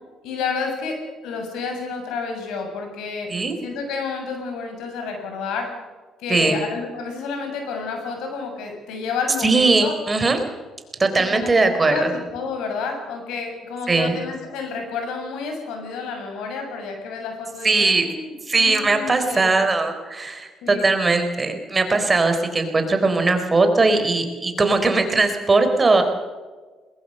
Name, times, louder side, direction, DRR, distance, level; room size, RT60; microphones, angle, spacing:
voice 1, 0.2-3.3 3.6-5.7 6.2-9.9 11.1-11.5 11.8-19.5 20.6-20.9, left 4 dB, 85° left, 3 dB, 7.4 m, -30 dB
voice 2, 9.4-10.4 11.0-12.1 13.9-14.2 17.6-18.0 18.5-26.0, right 3 dB, 25° right, 6 dB, 4.0 m, -19 dB
21.5 x 21.0 x 6.8 m, 1.3 s
cardioid pair, 95°, 0 cm